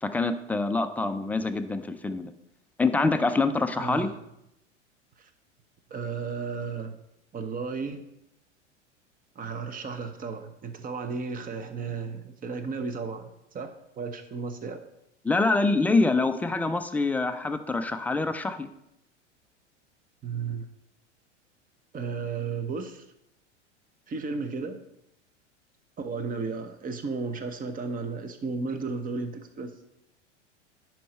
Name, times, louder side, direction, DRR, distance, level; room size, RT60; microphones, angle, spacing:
voice 1, 0.0-2.3 2.8-4.1 15.2-18.7, left 3 dB, 5° left, 8 dB, 0.4 m, -25 dB
voice 2, 3.8-4.1 5.2-5.3 5.9-7.0 7.3-8.1 9.3-13.7 14.0-14.8 20.2-20.7 21.9-23.0 24.1-24.8 26.0-29.7, right 4 dB, 25° right, 8 dB, 1.0 m, -34 dB
10.5 x 4.7 x 4.3 m, 0.84 s
figure-of-eight pair, 90°, 36 cm